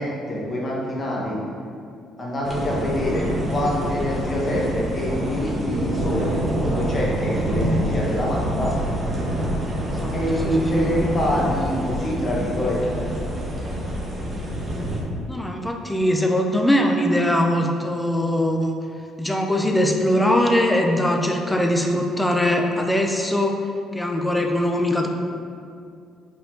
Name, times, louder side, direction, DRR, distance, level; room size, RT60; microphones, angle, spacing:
voice 1, 0.0-1.4 2.2-8.8 10.1-13.1, equal, 25° left, -5 dB, 1.2 m, -25 dB
sound 1, 2.4-15.0, right 1 dB, 25° right, 0.9 m, -26 dB
voice 2, 10.4-10.9 15.3-18.7 19.2-23.6 23.9-25.1, left 1 dB, 5° left, 2 dB, 0.5 m, -21 dB
5.4 x 4.6 x 3.8 m, 2.4 s
cardioid pair, 155°, 0 cm